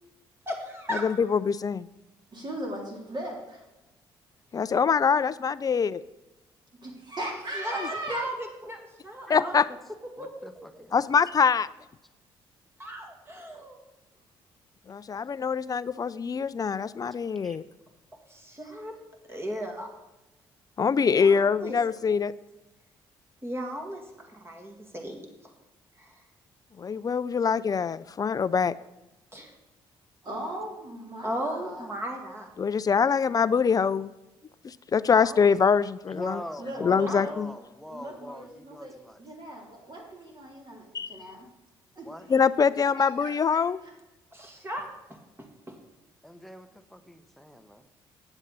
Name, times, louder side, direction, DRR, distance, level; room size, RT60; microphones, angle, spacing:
voice 1, 0.5-1.3 7.5-9.6 10.2-10.8 12.8-13.8 18.3-19.0 19.3-19.9 20.8-21.8 23.4-25.2 26.0-26.1 29.3-29.5 31.2-32.5 35.2-35.6 37.1-37.2 44.3-45.8, equal, 20° right, 2 dB, 2.1 m, -36 dB
voice 2, 1.0-1.9 4.5-6.0 7.8-7.9 9.3-9.6 10.9-11.7 14.9-17.6 20.8-22.3 26.8-28.7 32.6-34.1 34.6-36.4 36.8-37.5 40.9-41.1 42.3-43.8, left 6 dB, 35° left, 17 dB, 0.4 m, -24 dB
voice 3, 2.3-3.6 6.8-8.3 30.2-31.9 36.6-37.5 37.9-41.5 41.9-42.1 43.2-43.9, right 1 dB, 40° right, -1 dB, 3.2 m, -38 dB
voice 4, 9.3-9.7 10.2-11.2 17.4-17.6 18.5-18.7 36.1-39.2 42.0-42.3 46.2-47.9, equal, ahead, 8 dB, 0.9 m, -43 dB
8.8 x 7.3 x 4.1 m, 1.0 s
hypercardioid pair, 50°, 11 cm